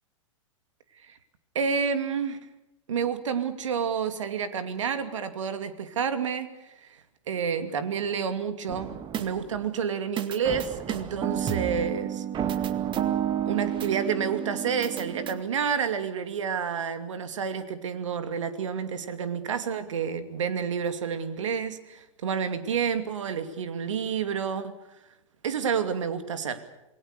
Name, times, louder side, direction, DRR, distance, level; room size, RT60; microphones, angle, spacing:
voice 1, 1.5-2.4 2.9-6.5 6.8-7.0 7.3-12.2 13.4-24.7 25.4-26.6, right 7 dB, 70° right, 10 dB, 2.7 m, -29 dB
sound 1, 8.7-9.7 10.2-15.4, right 9 dB, 30° right, 2.1 m, -30 dB
28.0 x 21.0 x 6.8 m, 0.94 s
figure-of-eight pair, 100°, 16 cm